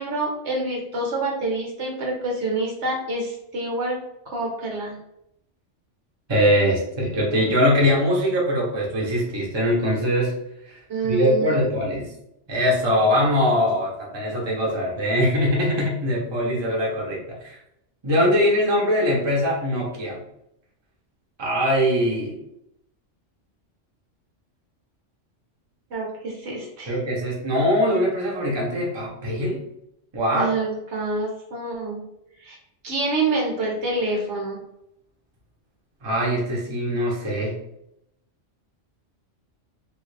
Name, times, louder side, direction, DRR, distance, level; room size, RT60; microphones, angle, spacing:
voice 1, 0.0-4.0 4.3-5.0 10.9-11.7 25.9-27.0 30.3-32.0 32.4-32.6 32.8-34.6, right 2 dB, 65° right, -2 dB, 1.2 m, -27 dB
voice 2, 6.3-10.3 10.7-12.1 12.5-17.6 18.0-20.2 21.4-22.4 26.9-29.6 30.1-30.5 36.0-37.6, equal, 25° right, -4 dB, 0.8 m, -22 dB
3.1 x 2.4 x 3.2 m, 0.81 s
omnidirectional pair, 1.3 m